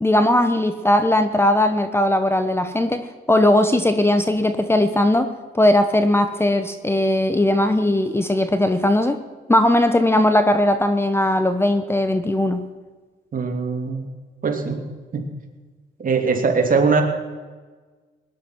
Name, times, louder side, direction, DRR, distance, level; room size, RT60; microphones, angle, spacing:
voice 1, 0.0-5.3 5.5-9.2 9.5-12.6, left 1 dB, 10° left, 9 dB, 1.0 m, -18 dB
voice 2, 13.3-14.0 14.4-15.3 16.0-17.0, right 4 dB, 45° right, 3 dB, 2.8 m, -21 dB
19.0 x 10.5 x 6.2 m, 1.4 s
cardioid pair, 90°, 20 cm